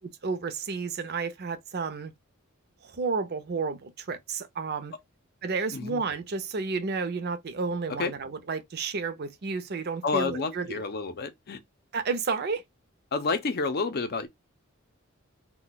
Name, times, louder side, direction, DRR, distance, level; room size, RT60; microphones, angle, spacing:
voice 1, 0.2-2.1 2.8-4.9 5.4-10.9 11.9-12.6, right 4 dB, 50° right, 0.6 m, -31 dB
voice 2, 5.7-6.0 8.0-8.1 10.0-11.6 13.1-14.3, left 4 dB, 50° left, 0.6 m, -29 dB
2.3 x 2.2 x 3.9 m
head